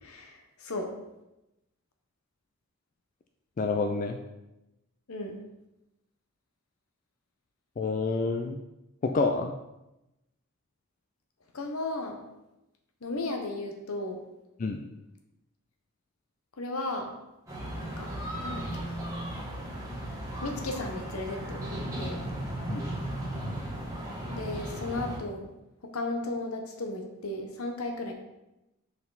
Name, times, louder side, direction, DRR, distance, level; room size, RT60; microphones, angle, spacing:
voice 1, 0.0-0.9 5.1-5.4 11.5-12.2 13.0-14.2 16.6-17.1 17.8-18.1 18.4-18.9 20.4-22.2 24.3-25.5 25.9-28.1, left 2 dB, 75° left, 4 dB, 1.0 m, -35 dB
voice 2, 3.6-4.2 7.8-8.6 9.0-9.5 14.6-14.8 22.7-22.8, left 3 dB, 35° left, 4 dB, 0.3 m, -28 dB
sound 1, 17.5-25.2, right 1 dB, 15° right, 1.5 m, -36 dB
5.4 x 4.6 x 4.0 m, 0.93 s
head